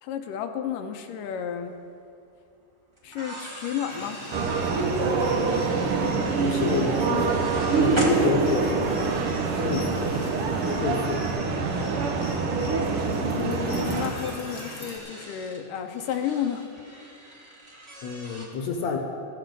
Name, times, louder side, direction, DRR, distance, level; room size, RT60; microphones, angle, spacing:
voice 1, 0.0-1.7 3.0-4.2 13.4-16.6, left 9 dB, 80° left, 6 dB, 2.4 m, -32 dB
sound 1, 1.7-1.8 3.0-8.9 10.2-10.3 12.1-12.2 12.5-12.6 13.8-18.5, equal, 15° right, 1.1 m, -39 dB
sound 2, 3.9-15.0, left 2 dB, 45° left, 1.2 m, -41 dB
sound 3, 4.3-14.1, right 4 dB, 70° right, 1.3 m, -25 dB
voice 2, 6.0-7.4 7.7-9.2 9.6-9.9 10.8-11.3 18.0-19.0, left 5 dB, 65° left, 2 dB, 2.1 m, -29 dB
15.5 x 14.5 x 4.0 m, 2.5 s
omnidirectional pair, 3.9 m